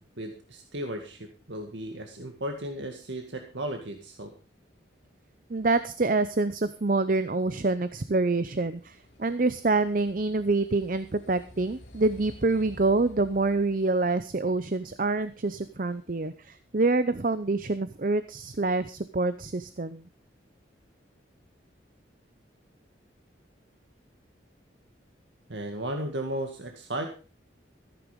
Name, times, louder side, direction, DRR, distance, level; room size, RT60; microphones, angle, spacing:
voice 1, 0.0-4.3 25.5-27.1, right 1 dB, 75° right, 4 dB, 2.0 m, -35 dB
sound 1, 4.9-16.3, left 1 dB, 80° left, 2.4 m, -53 dB
voice 2, 5.5-20.0, right 3 dB, 45° right, 13 dB, 0.6 m, -26 dB
14.5 x 10.0 x 5.2 m, 0.35 s
head